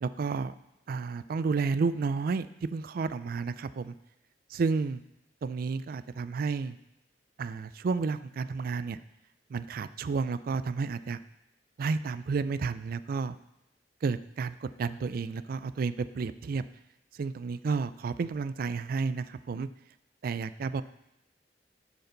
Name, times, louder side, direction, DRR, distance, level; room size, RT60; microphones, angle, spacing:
voice 1, 0.0-0.5 0.9-3.9 4.5-5.0 5.4-6.8 7.4-9.0 9.5-11.2 11.8-13.3 14.0-16.6 17.2-19.7 20.2-20.8, right 4 dB, 55° right, 13 dB, 0.4 m, -31 dB
12.0 x 4.4 x 3.9 m, 0.89 s
head